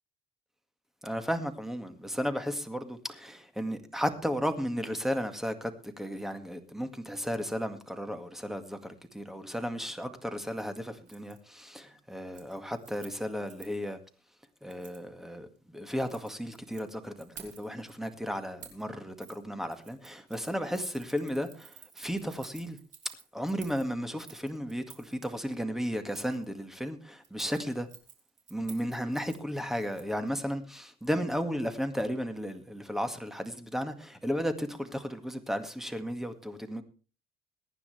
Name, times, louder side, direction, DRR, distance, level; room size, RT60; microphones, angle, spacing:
voice 1, 1.0-5.7 6.0-14.0 14.6-15.5 15.7-22.8 23.3-27.9 28.5-36.8, equal, ahead, 1.9 m, -34 dB
Keys jangling, 11.1-11.4 11.7-12.0 12.3-13.9 14.7-15.0 15.9-16.8 17.2-17.9 18.6-18.9 19.2-19.4 19.7-25.3 26.1-26.4 27.2-30.3 30.6-30.7, right 7 dB, 50° right, 3.9 m, -52 dB
22.5 x 10.0 x 3.4 m
cardioid pair, 110°, 17 cm